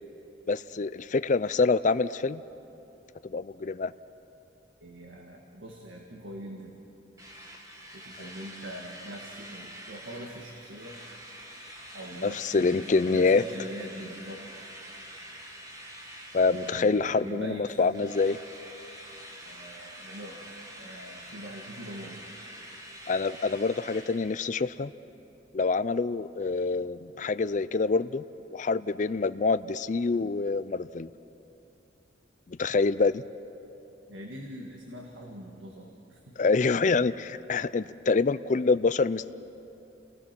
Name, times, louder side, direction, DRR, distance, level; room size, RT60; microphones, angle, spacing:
voice 1, 0.5-2.4 3.3-3.9 12.2-13.4 16.3-18.4 23.1-24.9 25.5-28.2 28.5-31.1 32.5-33.2 36.4-39.3, left 4 dB, 40° left, 14 dB, 0.4 m, -26 dB
voice 2, 4.8-6.8 7.9-11.0 11.9-14.4 16.5-18.0 19.4-20.4 20.7-22.2 34.1-36.4, equal, 90° right, 0 dB, 1.9 m, -42 dB
Drill, 7.2-17.6 17.9-24.8, equal, 20° right, 1.8 m, -46 dB
29.0 x 19.5 x 6.0 m, 2.9 s
head